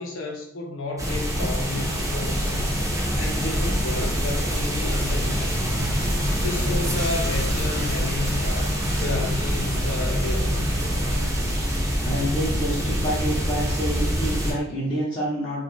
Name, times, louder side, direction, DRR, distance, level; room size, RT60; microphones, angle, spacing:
voice 1, 0.0-5.9 6.4-10.8, left 3 dB, 80° left, 1 dB, 0.6 m, -32 dB
sound 1, 1.0-14.5, equal, 15° right, 0.6 m, -25 dB
sound 2, 5.8-12.3, equal, 60° right, 0.4 m, -35 dB
voice 2, 12.0-15.6, equal, 25° left, -10 dB, 0.6 m, -27 dB
2.5 x 2.2 x 3.1 m, 0.68 s
head